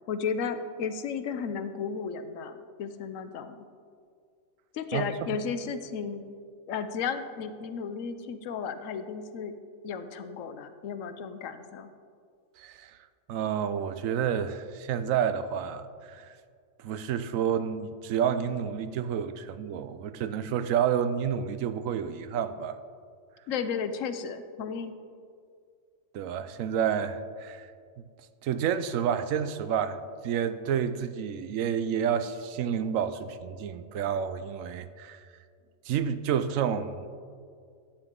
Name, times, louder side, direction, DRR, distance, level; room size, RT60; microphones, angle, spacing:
voice 1, 0.1-2.5 2.8-3.7 4.7-6.2 6.7-9.5 9.8-11.9 23.5-24.9, left 6 dB, 80° left, 10 dB, 1.0 m, -34 dB
voice 2, 4.9-5.4 12.6-13.0 13.3-16.3 16.8-22.8 26.1-27.7 28.4-35.2 35.8-37.1, right 8 dB, 85° right, 12 dB, 1.0 m, -29 dB
11.5 x 9.0 x 3.7 m, 2.2 s
omnidirectional pair, 1.3 m